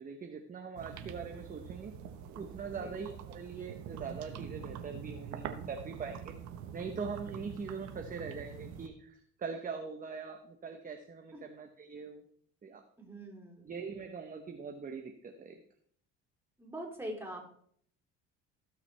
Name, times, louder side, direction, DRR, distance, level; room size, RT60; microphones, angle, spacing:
voice 1, 0.0-1.9 2.3-6.4 6.7-12.2 12.6-12.8 13.6-15.6, right 5 dB, 30° right, 4 dB, 1.0 m, -42 dB
sound 1, 0.8-8.9, right 8 dB, 70° right, 1.3 m, -45 dB
voice 2, 13.0-13.7 16.6-17.4, right 1 dB, 10° right, -1 dB, 3.5 m, -43 dB
17.0 x 5.9 x 3.4 m, 0.62 s
cardioid pair, 105°, 29 cm